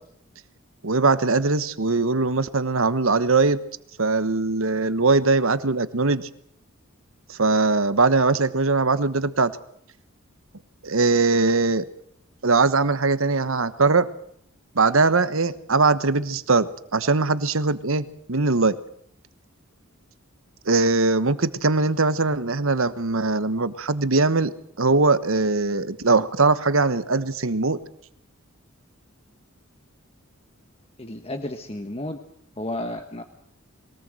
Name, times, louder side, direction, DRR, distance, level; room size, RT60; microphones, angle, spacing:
voice 1, 0.8-3.6 4.0-6.3 7.3-9.6 10.8-11.9 12.4-14.1 14.7-18.8 20.7-27.8, right 3 dB, 70° right, 14 dB, 1.2 m, -21 dB
voice 2, 31.0-32.2 32.6-33.2, left 1 dB, 25° left, 6 dB, 1.3 m, -32 dB
22.5 x 18.5 x 7.8 m, 0.69 s
head